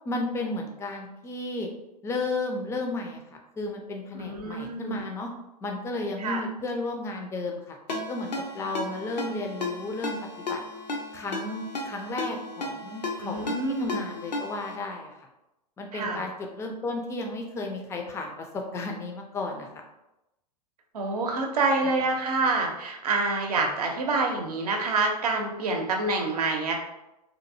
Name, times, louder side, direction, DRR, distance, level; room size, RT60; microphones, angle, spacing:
voice 1, 0.1-1.7 2.0-3.2 3.6-5.3 5.6-7.8 8.1-8.3 8.5-10.6 11.1-13.5 13.8-15.1 15.8-19.7 21.8-22.0, left 2 dB, 15° left, 2 dB, 0.4 m, -33 dB
voice 2, 4.1-5.0 6.2-6.4 13.2-14.0 15.9-16.2 20.9-26.7, right 3 dB, 65° right, 2 dB, 0.6 m, -27 dB
Ringtone, 7.9-14.8, left 2 dB, 85° left, 0.5 m, -35 dB
2.8 x 2.6 x 2.6 m, 0.94 s
figure-of-eight pair, 95°, 21 cm